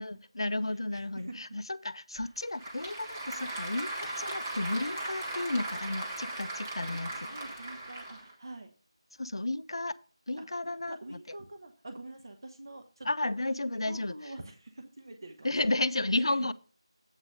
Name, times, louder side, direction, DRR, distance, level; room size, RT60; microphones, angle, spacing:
voice 1, 0.0-7.1 9.2-9.9 10.3-11.2 13.1-14.1 15.4-16.5, left 2 dB, 60° left, 0.4 m, -32 dB
voice 2, 0.7-1.6 2.1-2.3 3.3-3.5 6.9-8.7 10.4-13.3 13.8-15.7 16.1-16.5, right 2 dB, 45° right, 1.0 m, -46 dB
Applause / Crowd, 2.2-8.3, right 1 dB, 25° right, 1.5 m, -38 dB
8.0 x 4.0 x 6.2 m
figure-of-eight pair, 165°, 3 cm